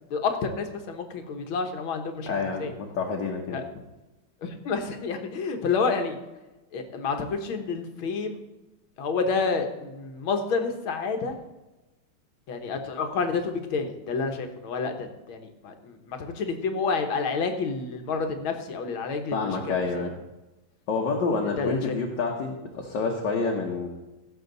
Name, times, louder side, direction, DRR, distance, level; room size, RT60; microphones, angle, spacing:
voice 1, 0.1-2.7 3.5-3.6 4.4-6.2 6.7-8.4 9.0-11.4 12.5-20.1 21.6-22.0, left 4 dB, 75° left, 6 dB, 2.0 m, -29 dB
voice 2, 2.3-3.6 19.3-20.1 20.9-23.9, left 4 dB, 60° left, 0 dB, 1.7 m, -28 dB
16.0 x 7.6 x 4.0 m, 1.1 s
omnidirectional pair, 2.3 m